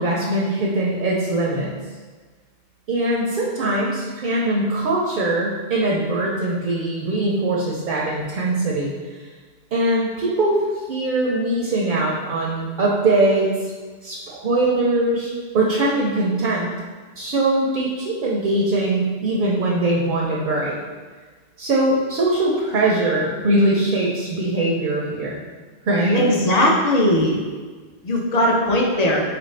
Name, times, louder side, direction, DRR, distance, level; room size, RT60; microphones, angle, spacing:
voice 1, 0.0-1.7 2.9-9.2 9.7-13.7 14.0-16.7 17.2-20.8 21.6-25.3 25.8-26.3, right 2 dB, 60° right, -3 dB, 0.6 m, -21 dB
voice 2, 26.1-27.4 28.0-29.2, left 1 dB, 50° left, -1 dB, 0.6 m, -18 dB
4.3 x 2.5 x 3.2 m, 1.4 s
omnidirectional pair, 1.1 m